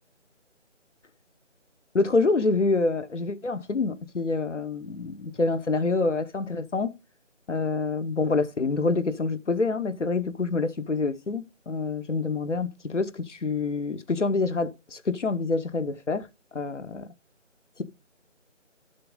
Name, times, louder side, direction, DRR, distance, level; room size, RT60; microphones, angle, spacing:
voice 1, 1.9-6.9 7.5-16.3 16.5-17.1 17.8-17.9, left 3 dB, 70° left, 1.0 m, -27 dB
11.0 x 6.8 x 3.7 m
figure-of-eight pair, 160°, 38 cm